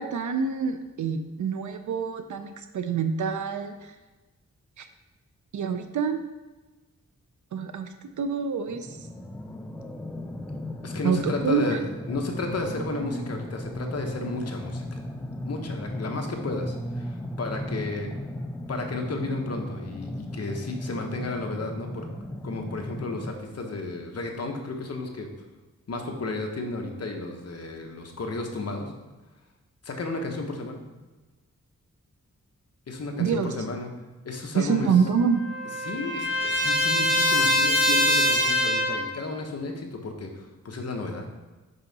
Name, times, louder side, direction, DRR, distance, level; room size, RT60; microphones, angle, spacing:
voice 1, 0.0-4.0 4.8-4.9 5.5-6.2 7.5-7.9 8.2-9.1 11.0-11.8 33.2-33.5 34.5-35.4, right 6 dB, 70° right, 8 dB, 0.5 m, -26 dB
sound 1, 8.7-23.3, left 1 dB, 5° left, 0.4 m, -36 dB
voice 2, 10.8-15.0 15.4-18.1 18.7-22.1 22.4-25.3 25.9-28.9 29.8-30.8 32.9-33.9 34.2-34.9 35.8-41.3, left 3 dB, 50° left, 2 dB, 1.0 m, -33 dB
Trumpet, 34.7-39.1, equal, 40° right, 1.6 m, -24 dB
5.7 x 5.5 x 4.0 m, 1.2 s
wide cardioid pair, 120°, 31 cm